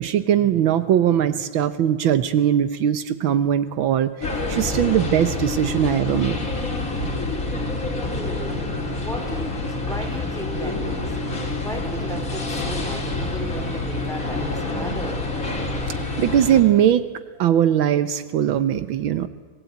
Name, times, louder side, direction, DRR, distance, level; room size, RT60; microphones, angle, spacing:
voice 1, 0.0-4.1 4.5-6.4 16.2-17.1 17.4-19.3, right 10 dB, 80° right, 13 dB, 1.7 m, -20 dB
sound 1, 4.2-16.6, left 2 dB, 40° left, 3.9 m, -27 dB
voice 2, 8.1-11.2 11.6-15.3, right 1 dB, ahead, 3 dB, 3.8 m, -36 dB
26.0 x 19.5 x 9.3 m, 1.4 s
omnidirectional pair, 2.2 m